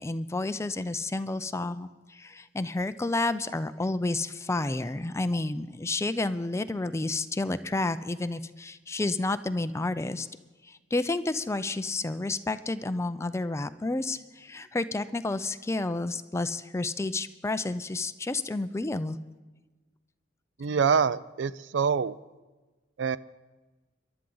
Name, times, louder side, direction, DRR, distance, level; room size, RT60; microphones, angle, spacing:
voice 1, 0.0-10.3 10.6-19.2, left 2 dB, 15° left, 12 dB, 0.4 m, -30 dB
voice 2, 20.6-22.1 23.0-23.2, right 6 dB, 65° right, 17 dB, 0.4 m, -25 dB
23.0 x 11.5 x 3.9 m, 1.2 s
head